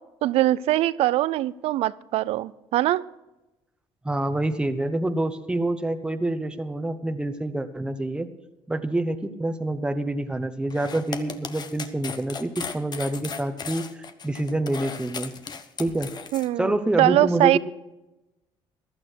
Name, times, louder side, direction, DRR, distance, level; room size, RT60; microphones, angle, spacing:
voice 1, 0.2-3.0 16.3-17.6, right 15 dB, 75° right, 20 dB, 0.4 m, -22 dB
voice 2, 4.0-8.3 8.7-15.3 15.8-16.1 16.6-17.6, right 1 dB, 10° right, 9 dB, 1.0 m, -27 dB
sound 1, 10.7-16.5, left 5 dB, 45° left, 1.1 m, -36 dB
15.0 x 12.0 x 4.6 m, 1.0 s
cardioid pair, 95°, 10 cm